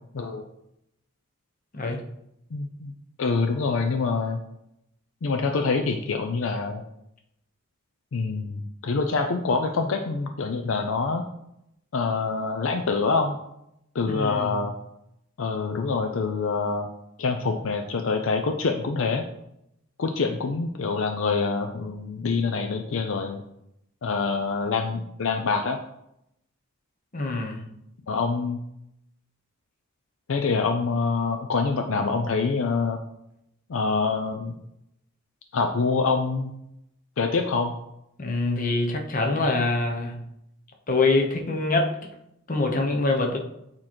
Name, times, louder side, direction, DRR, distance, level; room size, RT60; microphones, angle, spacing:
voice 1, 2.5-2.9 3.2-4.4 5.2-6.8 8.1-11.3 11.9-13.4 13.9-14.7 15.4-16.9 17.2-19.2 20.0-23.4 24.0-25.8 28.1-28.6 30.3-33.0 33.7-34.6 35.5-36.5 37.2-37.7, left 4 dB, 70° left, 5 dB, 0.5 m, -25 dB
voice 2, 14.1-14.6 27.1-27.7 38.2-40.1 40.9-41.9 42.5-43.4, left 2 dB, 40° left, 2 dB, 0.9 m, -24 dB
8.6 x 3.0 x 4.3 m, 0.80 s
head